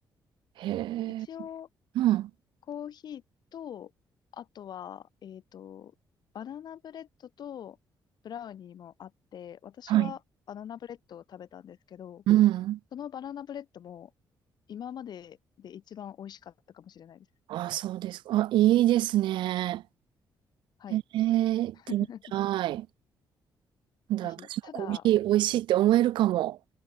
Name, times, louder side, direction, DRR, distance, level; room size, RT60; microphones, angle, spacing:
voice 1, 0.6-1.3 2.0-2.3 9.9-10.1 12.3-12.8 17.5-19.8 20.9-22.1 22.3-22.9 24.1-26.6, right 14 dB, 85° right, 0.4 m, -25 dB
voice 2, 1.2-1.7 2.7-3.2 3.5-3.9 4.3-5.9 6.3-7.8 8.2-10.2 10.5-12.2 12.9-14.1 14.7-17.3 20.8-21.0 21.9-22.2 24.2-25.1, left 9 dB, 60° left, 1.9 m, -42 dB
cardioid pair, 120°, 8 cm